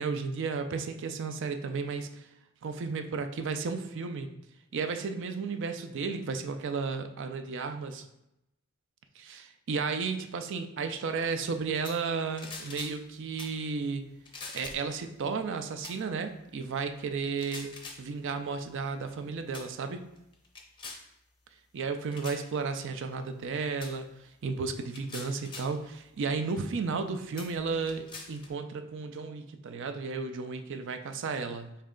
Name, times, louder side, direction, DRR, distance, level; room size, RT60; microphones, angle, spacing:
voice 1, 0.0-2.3 2.6-4.3 4.7-8.0 9.2-14.0 14.5-17.7 18.0-20.1 21.7-31.8, right 4 dB, 60° right, 8 dB, 0.4 m, -33 dB
sound 1, 11.8-12.1 12.4-13.0 13.4-13.6 14.2-14.9 15.8-16.0 17.3-18.0 18.9-19.1 19.5-19.7 20.2-21.1 22.1-22.4 23.8-24.0 24.8-25.7 26.6-26.7 27.4-28.5, left 3 dB, 20° left, 0.5 m, -44 dB
4.3 x 3.2 x 3.7 m, 0.87 s
head